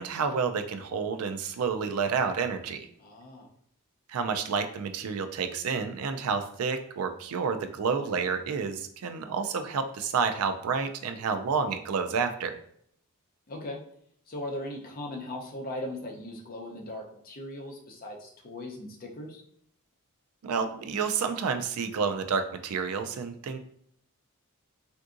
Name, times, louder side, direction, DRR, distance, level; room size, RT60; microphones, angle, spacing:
voice 1, 0.0-2.9 4.1-12.5 20.4-23.6, right 5 dB, 70° right, 8 dB, 0.4 m, -29 dB
voice 2, 3.0-3.5 13.5-13.8 14.3-19.4, left 1 dB, 40° left, 0 dB, 0.6 m, -38 dB
3.5 x 2.6 x 2.4 m, 0.67 s
head